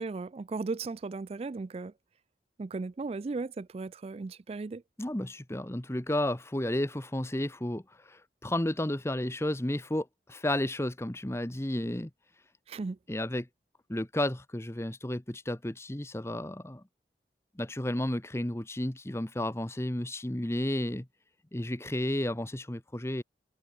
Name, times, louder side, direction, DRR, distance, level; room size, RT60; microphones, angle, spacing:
voice 1, 0.0-1.9 2.6-4.8 12.7-13.0, right 3 dB, 35° right, 0.3 m, -36 dB
voice 2, 5.0-12.1 13.1-13.5 13.9-16.8 17.6-21.1 21.5-23.2, left 1 dB, 15° left, 1.0 m, -32 dB
head